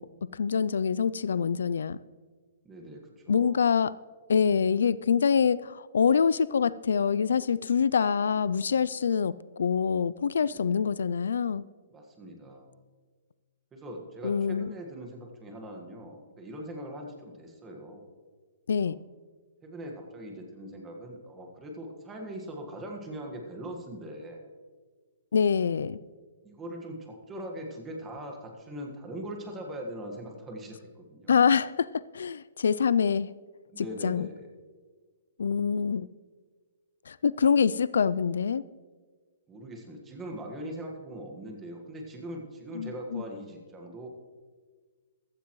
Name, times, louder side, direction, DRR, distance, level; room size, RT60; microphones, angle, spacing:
voice 1, 0.0-2.0 3.3-3.9 4.3-11.6 14.2-14.7 18.7-19.0 25.3-26.0 31.3-33.3 33.8-34.3 35.4-36.1 37.1-38.6 42.7-43.2, left 6 dB, 85° left, 18 dB, 0.3 m, -25 dB
voice 2, 2.6-3.6 10.5-10.8 11.9-12.7 13.7-18.1 18.8-18.9 19.6-24.5 25.5-25.7 26.4-31.3 33.7-34.5 39.5-44.1, right 1 dB, 10° right, 2 dB, 1.5 m, -41 dB
15.0 x 13.5 x 3.1 m, 1.5 s
hypercardioid pair, 165°, 0 cm